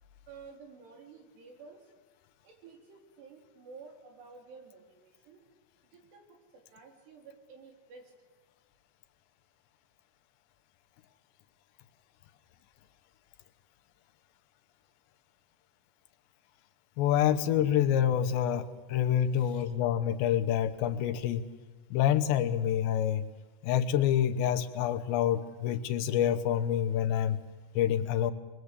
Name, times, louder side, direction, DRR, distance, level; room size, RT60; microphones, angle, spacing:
voice 1, 0.3-1.9 2.4-5.4 5.9-6.3 6.5-8.1 19.3-19.7, right 5 dB, 70° right, 2 dB, 5.6 m, -52 dB
voice 2, 17.0-21.4 21.9-23.2 23.6-27.4 27.8-28.3, left 10 dB, 80° left, 8 dB, 3.3 m, -27 dB
26.0 x 22.5 x 8.2 m, 1.3 s
omnidirectional pair, 5.0 m